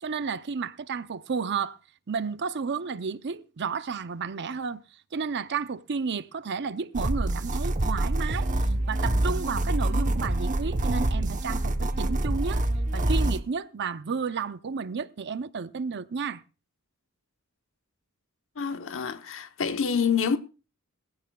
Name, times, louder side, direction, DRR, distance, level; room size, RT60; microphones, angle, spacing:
voice 1, 0.0-1.8 2.1-4.8 5.1-8.5 8.9-12.6 12.9-16.4, right 5 dB, 55° right, 0.6 m, -32 dB
sound 1, 6.9-13.4, right 1 dB, 35° right, 1.0 m, -26 dB
voice 2, 18.6-20.4, left 6 dB, 65° left, 1.0 m, -27 dB
19.5 x 16.0 x 2.3 m
head